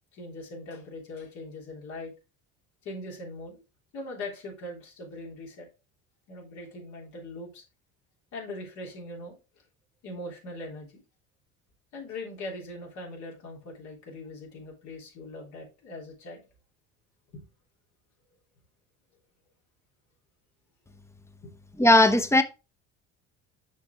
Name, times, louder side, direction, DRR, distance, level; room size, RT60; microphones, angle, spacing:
voice 1, 0.1-2.1 2.8-3.6 3.9-5.7 6.3-7.6 8.3-9.4 10.0-10.9 11.9-16.4 17.3-17.4 21.4-21.5, left 2 dB, 65° left, 3.3 m, -41 dB
voice 2, 21.8-22.4, left 1 dB, 10° left, 0.8 m, -18 dB
6.6 x 5.3 x 3.4 m
supercardioid pair, 90°, 30 cm